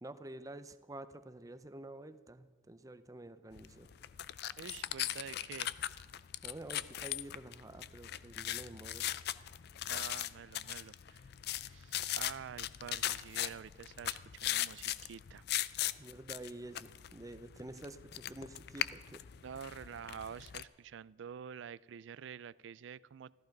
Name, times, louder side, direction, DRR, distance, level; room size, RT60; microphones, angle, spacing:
voice 1, 0.0-3.9 6.4-9.1 16.0-19.2, right 1 dB, 15° right, 12 dB, 0.6 m, -49 dB
sound 1, 3.6-20.6, left 13 dB, 55° left, 0.4 m, -39 dB
voice 2, 4.6-5.7 9.9-11.3 11.6-15.4 19.4-23.3, right 7 dB, 65° right, 21 dB, 0.3 m, -48 dB
14.5 x 14.0 x 5.3 m, 1.4 s
head